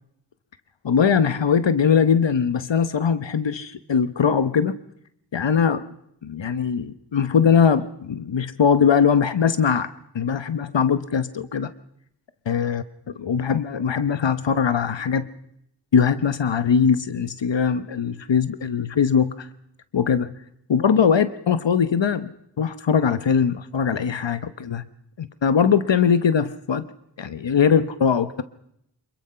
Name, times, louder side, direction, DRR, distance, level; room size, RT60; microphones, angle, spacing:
voice 1, 0.8-4.8 5.3-5.8 6.2-9.9 10.1-11.7 12.5-15.3 15.9-19.5 19.9-20.3 20.7-24.8 25.2-26.8 27.2-28.4, left 7 dB, 85° left, 13 dB, 1.1 m, -21 dB
27.0 x 21.5 x 5.7 m, 0.74 s
wide cardioid pair, 75°, 43 cm